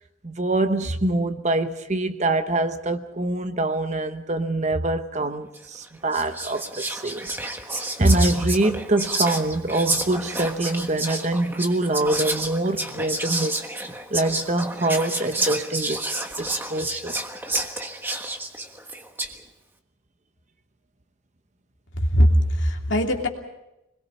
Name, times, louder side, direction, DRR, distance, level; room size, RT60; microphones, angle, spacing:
voice 1, 0.2-7.3 7.7-13.6 14.1-16.0 16.4-17.2, right 2 dB, 35° right, 1.0 m, -24 dB
Whispering, 5.5-5.8 6.1-19.4, right 2 dB, 10° right, 1.4 m, -30 dB
voice 2, 22.0-23.3, equal, 60° left, 2.9 m, -20 dB
26.5 x 21.0 x 5.7 m
head